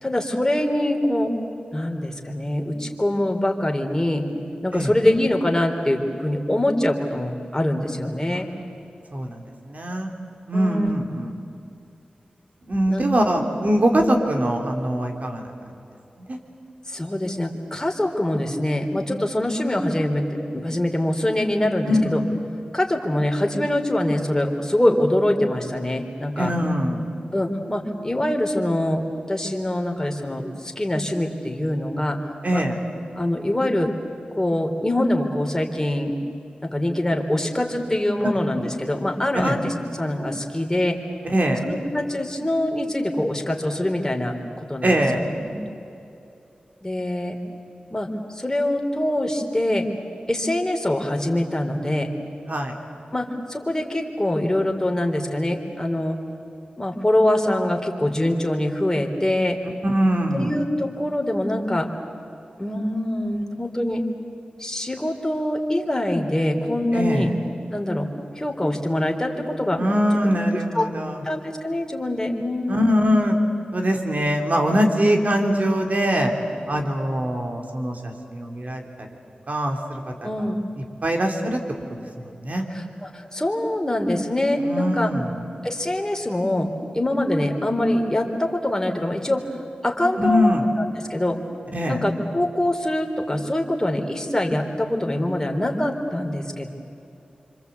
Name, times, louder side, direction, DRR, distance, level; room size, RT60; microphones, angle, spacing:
voice 1, 0.0-1.3 1.7-4.3 4.6-8.5 10.5-10.9 12.9-13.0 13.9-14.0 16.9-22.2 22.7-26.5 27.3-32.2 32.5-32.6 33.2-33.9 34.3-36.1 36.6-41.0 41.6-44.4 44.7-45.5 46.8-47.4 47.9-48.1 48.4-49.9 50.3-52.1 53.1-56.2 56.8-59.6 60.3-61.9 62.6-64.0 64.6-67.3 67.7-68.1 68.4-69.8 70.5-70.9 71.2-73.1 80.2-80.6 82.7-85.1 85.6-89.4 89.8-90.9 91.1-91.4 91.9-96.7, left 1 dB, 20° left, 2 dB, 3.6 m, -24 dB
voice 2, 9.1-10.1 10.5-11.3 12.7-15.5 16.3-16.4 21.9-22.2 26.4-27.1 32.4-32.8 39.4-39.6 41.2-41.6 44.8-45.2 52.5-52.7 59.8-60.5 66.9-67.3 69.8-71.2 72.7-73.4 73.7-76.3 76.7-78.8 79.5-80.5 81.0-81.6 81.9-82.0 82.4-82.6 84.6-85.4 90.2-90.7 91.7-92.0, equal, 55° right, 3 dB, 3.5 m, -22 dB
26.5 x 25.5 x 8.3 m, 2.7 s
cardioid pair, 50°, 3 cm